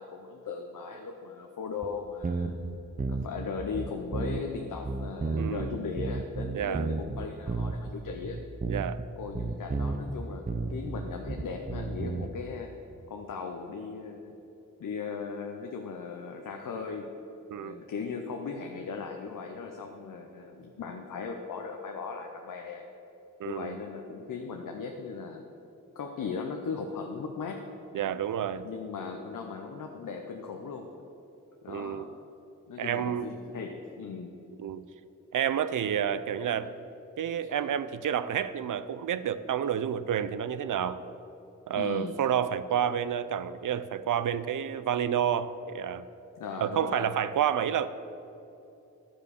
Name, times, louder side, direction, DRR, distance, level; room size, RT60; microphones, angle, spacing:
voice 1, 0.0-2.5 3.1-8.4 9.1-12.7 13.1-14.3 14.8-17.1 17.6-22.9 23.4-25.5 26.0-27.7 28.6-30.9 31.6-32.1 32.7-34.4 41.8-42.1 46.4-47.1, left 5 dB, 85° left, 3 dB, 0.7 m, -38 dB
sound 1, 1.8-1.9 2.2-3.4 3.7-4.5 4.9-7.9 8.2-9.1 9.3-10.1 10.5-12.3, right 3 dB, 25° right, 0.6 m, -32 dB
voice 2, 5.3-5.8 6.5-6.9 8.7-9.0 17.5-17.8 23.4-23.8 27.9-28.7 31.7-32.1 32.8-33.3 34.6-34.8 35.3-36.7 37.2-41.0 41.7-46.1 46.6-47.9, right 9 dB, 75° right, 14 dB, 0.5 m, -29 dB
11.5 x 5.0 x 6.6 m, 2.9 s
cardioid pair, 40°, 32 cm